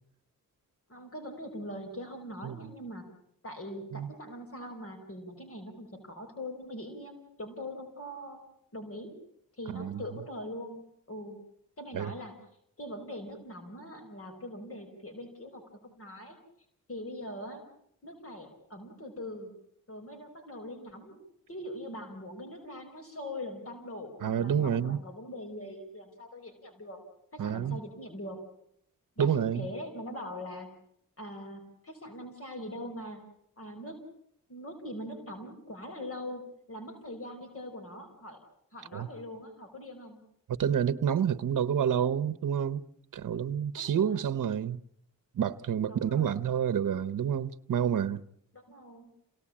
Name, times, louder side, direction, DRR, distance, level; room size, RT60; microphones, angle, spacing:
voice 1, 0.9-3.1 3.4-8.4 8.7-9.1 9.5-11.4 11.8-12.4 12.8-16.4 16.9-17.7 18.0-19.5 19.9-21.2 21.5-27.0 27.3-28.4 29.2-30.7 31.2-33.2 33.6-34.0 34.5-38.4 38.7-40.2 43.7-44.2 45.9-46.4 48.5-49.1, left 1 dB, 40° left, 5.3 m, -42 dB
voice 2, 9.7-10.0 11.9-12.1 24.2-25.0 27.4-27.8 29.2-29.7 38.9-39.1 40.5-42.8 43.1-44.8 45.3-48.2, right 8 dB, 65° right, 0.9 m, -29 dB
28.0 x 18.0 x 8.7 m
cardioid pair, 90°, 34 cm